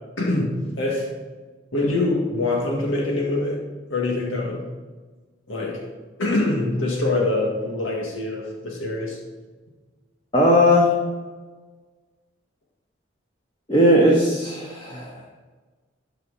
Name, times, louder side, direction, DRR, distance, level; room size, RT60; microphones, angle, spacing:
voice 1, 0.2-1.1 1.7-3.6 3.9-4.7 5.5-5.9 6.2-9.2, left 2 dB, 80° left, -1 dB, 1.9 m, -24 dB
voice 2, 10.3-11.0 13.7-15.2, equal, 25° left, -4 dB, 1.4 m, -17 dB
12.5 x 6.1 x 4.2 m, 1.3 s
head